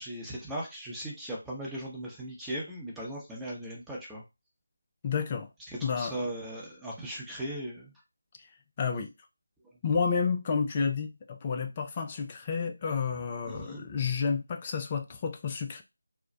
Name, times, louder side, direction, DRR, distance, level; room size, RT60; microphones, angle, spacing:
voice 1, 0.0-4.2 6.0-7.9 13.5-13.8, right 1 dB, 5° right, 0.8 m, -38 dB
voice 2, 5.0-5.5 5.8-6.2 8.8-9.1 9.8-15.8, left 5 dB, 25° left, 0.4 m, -30 dB
2.4 x 2.1 x 3.8 m
figure-of-eight pair, 160°, 0 cm